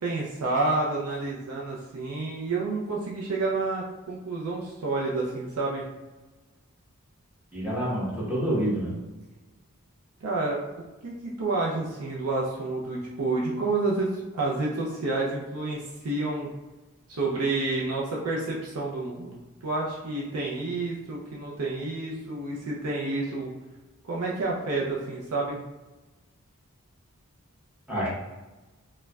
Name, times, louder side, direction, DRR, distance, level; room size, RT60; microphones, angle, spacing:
voice 1, 0.0-5.8 10.2-10.7 11.0-16.5 17.1-23.5 24.1-25.6, right 3 dB, 85° right, -4 dB, 0.5 m, -29 dB
voice 2, 7.5-8.9 27.9-28.1, right 1 dB, 5° right, -9 dB, 1.0 m, -27 dB
4.4 x 2.2 x 2.3 m, 1.1 s
head